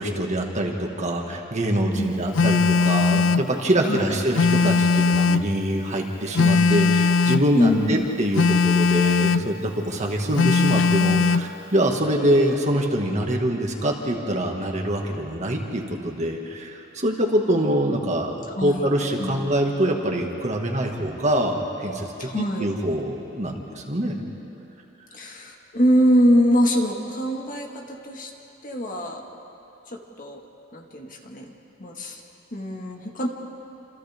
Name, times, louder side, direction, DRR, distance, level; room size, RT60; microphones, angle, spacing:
voice 1, 0.0-24.2, right 1 dB, 35° right, 1 dB, 2.0 m, -24 dB
Telephone, 2.3-3.5 4.3-5.5 6.3-7.5 8.3-9.5 10.4-11.5, left 4 dB, 70° left, 0.4 m, -19 dB
voice 2, 7.5-8.1 18.6-18.9 19.2-19.5 22.2-22.7 25.1-28.3 28.6-29.2 29.9-30.4 30.7-31.5 31.8-32.2 32.5-33.3, equal, 45° left, 1 dB, 1.9 m, -23 dB
28.5 x 27.5 x 3.7 m, 3.0 s
head